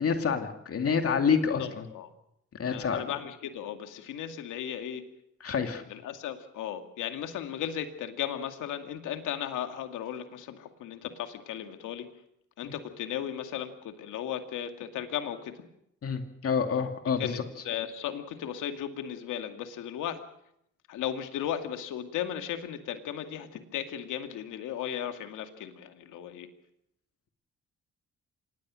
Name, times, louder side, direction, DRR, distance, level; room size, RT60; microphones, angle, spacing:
voice 1, 0.0-1.9 2.5-3.0 5.4-5.8 12.6-12.7 16.0-17.3, left 6 dB, 50° left, 6 dB, 2.5 m, -28 dB
voice 2, 1.6-2.1 2.7-5.0 5.9-12.1 12.6-15.6 17.2-20.2 20.9-26.5, left 10 dB, 85° left, 6 dB, 2.3 m, -36 dB
25.5 x 19.5 x 6.4 m, 0.77 s
cardioid pair, 90°, 30 cm